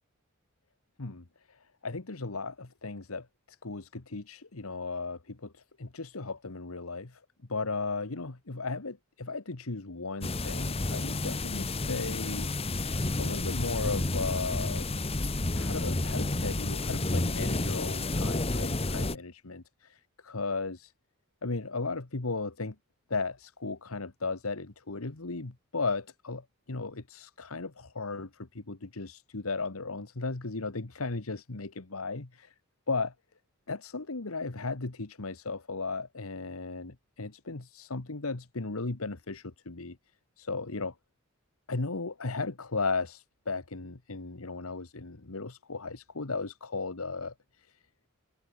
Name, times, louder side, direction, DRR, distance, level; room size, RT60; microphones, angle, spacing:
voice 1, 1.0-1.6 1.8-3.3 3.6-7.2 7.5-12.5 12.8-14.9 15.5-20.9 21.4-22.7 23.1-32.5 32.9-33.1 33.7-40.0 40.4-40.9 41.7-47.3, left 3 dB, 90° left, 1.5 m, -36 dB
sound 1, 10.2-19.2, left 2 dB, 30° left, 1.2 m, -30 dB
head